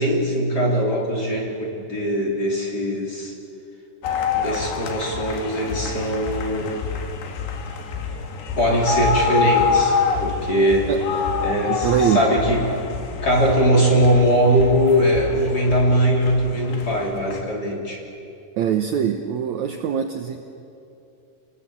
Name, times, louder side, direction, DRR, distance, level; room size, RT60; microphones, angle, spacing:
voice 1, 0.0-3.3 4.4-6.8 8.6-10.9 11.4-12.6 13.2-18.0, equal, 25° left, -1 dB, 3.4 m, -21 dB
sound 1, 4.0-17.4, left 5 dB, 80° left, 4.0 m, -26 dB
voice 2, 11.7-12.3 18.6-20.4, right 9 dB, 80° right, 6 dB, 1.7 m, -23 dB
28.0 x 20.0 x 8.6 m, 2.7 s
omnidirectional pair, 4.7 m